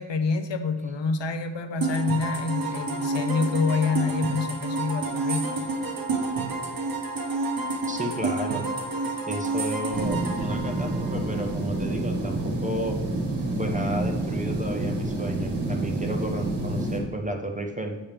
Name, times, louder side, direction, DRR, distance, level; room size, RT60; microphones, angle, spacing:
voice 1, 0.0-5.5, left 4 dB, 65° left, 7 dB, 0.7 m, -27 dB
sound 1, 1.8-11.5, right 3 dB, 45° right, 1.1 m, -29 dB
voice 2, 7.9-8.6 9.3-13.0 13.6-18.0, right 1 dB, 15° right, 3 dB, 0.6 m, -32 dB
sound 2, 9.9-17.0, right 1 dB, 65° right, 1.3 m, -28 dB
7.2 x 7.0 x 3.4 m, 1.1 s
wide cardioid pair, 145°, 47 cm